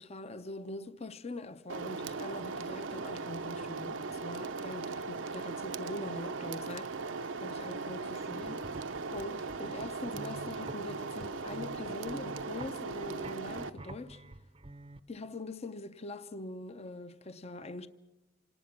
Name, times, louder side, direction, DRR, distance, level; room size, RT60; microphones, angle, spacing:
voice 1, 0.0-8.7 9.1-14.2 15.1-17.9, left 2 dB, 30° left, 0.6 m, -43 dB
sound 1, 1.7-13.7, right 4 dB, 75° right, 0.7 m, -38 dB
sound 2, 8.2-15.0, right 2 dB, 30° right, 0.7 m, -49 dB
26.5 x 19.0 x 5.9 m
head